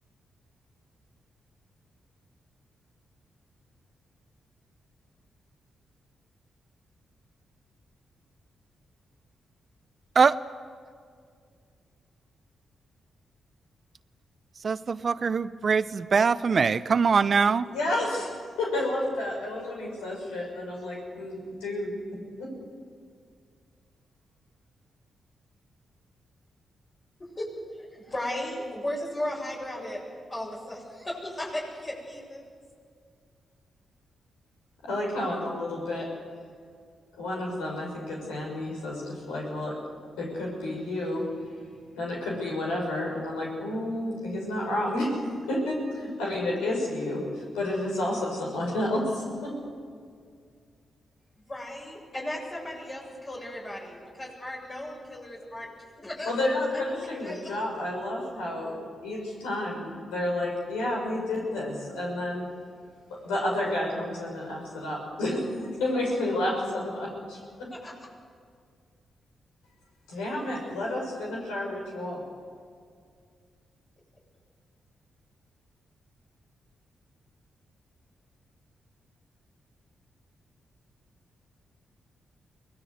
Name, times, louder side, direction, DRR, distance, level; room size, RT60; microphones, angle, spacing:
voice 1, 14.6-17.7, right 5 dB, 50° right, 15 dB, 0.8 m, -23 dB
voice 2, 17.6-18.3 18.6-22.5 34.8-36.1 37.1-39.7 40.2-41.2 41.9-45.1 45.5-49.5 56.2-58.7 59.0-62.4 63.2-65.5 65.8-67.7 70.1-72.2, left 1 dB, 85° left, -2 dB, 5.9 m, -30 dB
voice 3, 27.7-30.0 30.3-32.5 51.5-55.7 56.0-56.3 56.7-56.8 57.2-57.6 67.7-68.1, left 1 dB, 40° left, -4 dB, 7.7 m, -36 dB
23.5 x 18.0 x 8.1 m, 2.1 s
hypercardioid pair, 40°, 0 cm